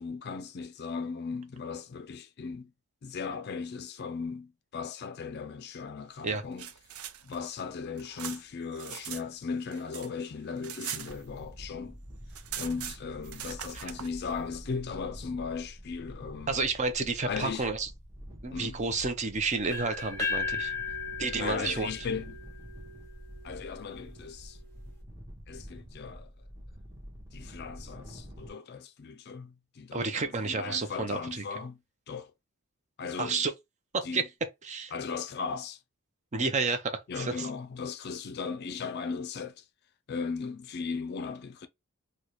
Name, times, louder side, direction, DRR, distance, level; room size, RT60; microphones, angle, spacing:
voice 1, 0.0-2.7 3.0-6.7 7.2-12.0 12.5-16.6 17.2-17.7 18.5-18.8 21.4-22.4 23.4-24.6 25.5-26.3 27.3-31.8 32.1-32.3 33.0-33.4 34.0-34.2 34.9-35.8 37.1-39.7 40.1-41.7, left 5 dB, 50° left, 0.4 m, -37 dB
sound 1, 6.3-9.2 9.5-11.7 12.0-12.1 12.3-14.1, right 10 dB, 85° right, 0.5 m, -41 dB
sound 2, 11.0-28.5, equal, 15° right, 0.9 m, -47 dB
voice 2, 16.5-17.9 18.4-20.7 21.2-21.9 29.9-31.4 33.2-33.5 33.9-34.2 34.6-34.9 36.3-37.5, right 4 dB, 35° right, 0.5 m, -30 dB
sound 3, 19.7-23.6, left 4 dB, 15° left, 1.0 m, -36 dB
4.0 x 2.2 x 2.9 m
head